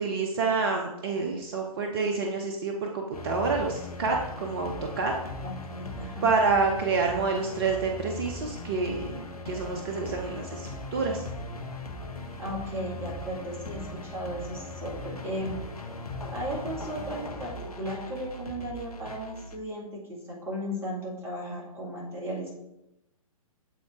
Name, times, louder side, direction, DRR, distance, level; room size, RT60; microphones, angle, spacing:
voice 1, 0.0-5.1 6.2-11.2, right 4 dB, 40° right, 2 dB, 0.7 m, -28 dB
sound 1, 3.1-19.6, left 2 dB, 80° left, 0.9 m, -39 dB
voice 2, 5.4-6.3 12.4-15.6 16.3-22.5, equal, 10° right, -4 dB, 1.8 m, -36 dB
8.4 x 3.9 x 3.5 m, 0.89 s
figure-of-eight pair, 120°, 19 cm